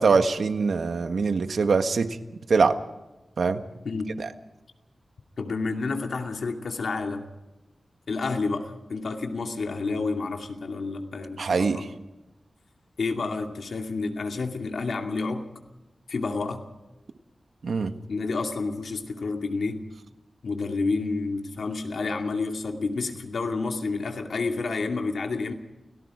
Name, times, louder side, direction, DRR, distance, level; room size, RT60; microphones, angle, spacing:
voice 1, 0.0-2.2 2.5-2.8 3.4-3.6 11.4-11.9 17.6-17.9, right 4 dB, 85° right, 8 dB, 1.5 m, -23 dB
voice 2, 5.4-7.3 8.1-11.9 13.0-15.4 16.1-16.6 18.1-19.8 20.4-25.5, left 3 dB, 85° left, 3 dB, 2.4 m, -29 dB
29.0 x 18.5 x 4.9 m, 1.0 s
wide cardioid pair, 85°, 0 cm